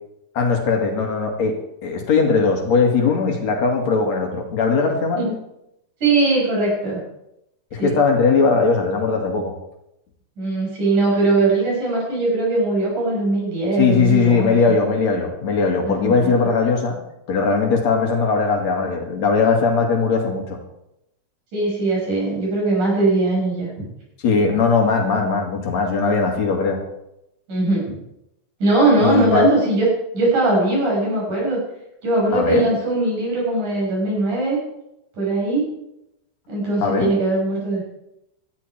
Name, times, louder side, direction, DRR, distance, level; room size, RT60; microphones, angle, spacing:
voice 1, 0.4-5.2 7.7-9.6 13.7-17.0 17.3-20.6 24.2-26.8 29.0-29.5 32.3-32.6 36.8-37.1, left 4 dB, 65° left, 2 dB, 3.5 m, -19 dB
voice 2, 6.0-7.0 7.8-8.0 10.4-14.7 15.8-16.3 21.5-23.7 27.5-27.8 28.6-31.6 32.0-34.6 35.1-35.6 36.5-37.8, right 2 dB, 90° right, -3 dB, 7.8 m, -20 dB
18.5 x 13.0 x 4.5 m, 0.84 s
omnidirectional pair, 3.4 m